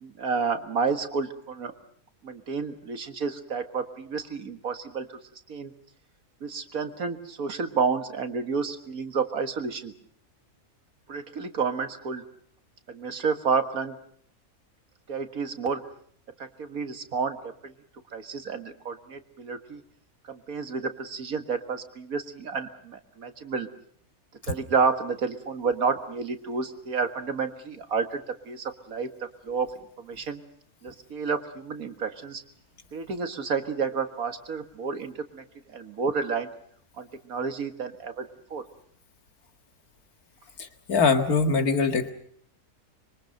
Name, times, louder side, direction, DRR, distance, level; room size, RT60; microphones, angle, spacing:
voice 1, 0.0-1.7 2.2-5.2 5.5-5.7 6.4-9.9 11.1-12.2 12.9-14.0 15.1-15.8 16.4-17.4 17.6-17.7 18.1-19.8 20.3-23.7 24.5-28.2 28.5-29.1 29.5-29.7 30.0-30.4 30.8-32.4 32.9-35.4 35.7-36.5 37.0-38.3 38.5-38.6, right 5 dB, 75° right, 8 dB, 2.2 m, -30 dB
voice 2, 40.6-42.1, left 4 dB, 90° left, 7 dB, 2.3 m, -23 dB
25.0 x 23.5 x 6.5 m, 0.62 s
omnidirectional pair, 1.5 m